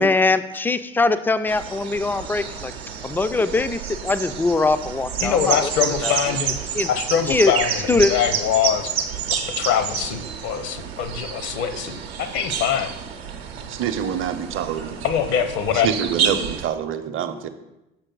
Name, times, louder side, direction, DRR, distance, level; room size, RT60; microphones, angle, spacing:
voice 1, 0.0-2.7 3.0-5.7 6.0-6.1 6.7-6.9 7.3-7.5 7.9-8.1, left 3 dB, 5° left, 12 dB, 0.3 m, -21 dB
sound 1, 1.5-16.7, right 7 dB, 80° right, 0.7 m, -29 dB
voice 2, 5.2-6.6 6.9-8.9 9.3-12.9 15.0-15.9, left 8 dB, 60° left, 9 dB, 0.8 m, -23 dB
voice 3, 13.7-15.0 15.8-17.5, right 8 dB, 40° right, 9 dB, 0.7 m, -26 dB
6.5 x 5.9 x 3.8 m, 0.93 s
figure-of-eight pair, 60°, 31 cm